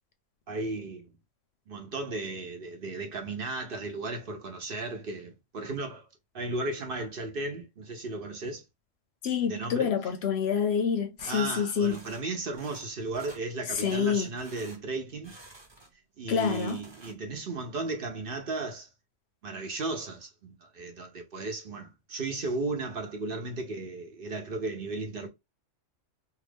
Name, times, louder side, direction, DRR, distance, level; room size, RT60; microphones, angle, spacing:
voice 1, 0.5-1.2 1.7-6.1 6.3-8.6 9.5-9.9 11.3-15.4 16.2-18.9 19.4-25.3, right 3 dB, 55° right, 0.9 m, -35 dB
voice 2, 9.2-12.0 13.7-14.3 16.3-16.8, left 7 dB, 65° left, 0.8 m, -27 dB
sound 1, 11.2-11.5 11.9-12.2 12.5-12.9 13.1-13.4 13.7-14.0 14.4-14.8 15.2-15.9 16.2-17.4, right 2 dB, 25° right, 0.9 m, -51 dB
2.7 x 2.4 x 3.3 m
omnidirectional pair, 1.3 m